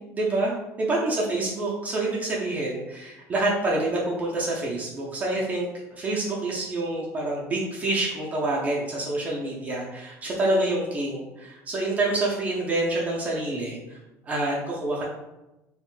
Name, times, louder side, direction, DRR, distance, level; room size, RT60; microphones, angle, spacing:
voice 1, 0.0-5.7 6.0-14.0 14.2-15.0, right 2 dB, 25° right, -4 dB, 0.4 m, -27 dB
2.5 x 2.1 x 3.1 m, 0.99 s
cardioid pair, 145°, 7 cm